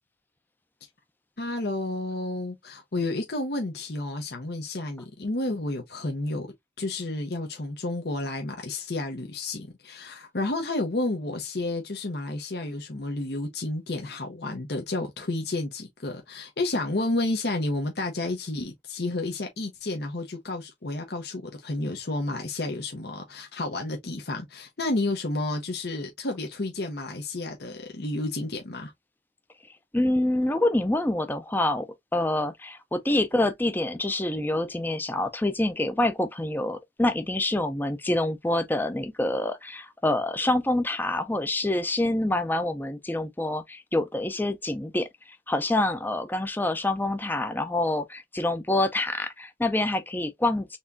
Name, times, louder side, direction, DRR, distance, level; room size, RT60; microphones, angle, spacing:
voice 1, 1.4-6.5 6.8-28.9, left 2 dB, 60° left, 0.9 m, -31 dB
voice 2, 29.9-50.8, left 1 dB, 10° left, 0.5 m, -26 dB
4.3 x 3.5 x 2.6 m
head